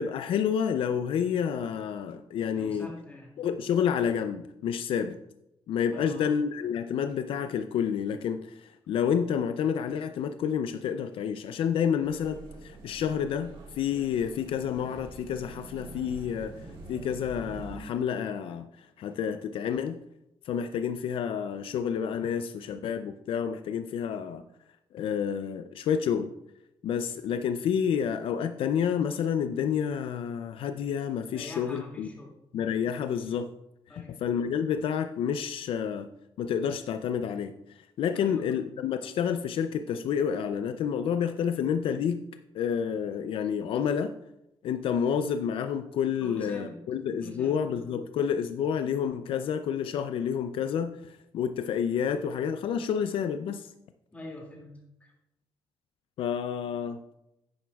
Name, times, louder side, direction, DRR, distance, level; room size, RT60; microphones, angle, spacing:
voice 1, 0.0-2.9 3.4-5.2 5.7-20.0 20.4-24.5 24.9-26.3 26.8-32.1 32.5-33.5 33.9-36.1 36.4-42.2 42.5-44.1 44.6-53.7 56.2-57.0, left 8 dB, 70° left, 9 dB, 0.4 m, -29 dB
voice 2, 2.5-3.3 5.9-6.3 31.3-32.4 33.9-34.2 38.1-38.4 46.2-46.7 47.1-47.6 54.1-54.7 55.0-55.1, left 1 dB, 15° left, -1 dB, 2.3 m, -44 dB
sound 1, 12.0-17.8, right 3 dB, 70° right, 2.5 m, -45 dB
10.5 x 9.3 x 2.3 m, 0.87 s
cardioid pair, 145°, 9 cm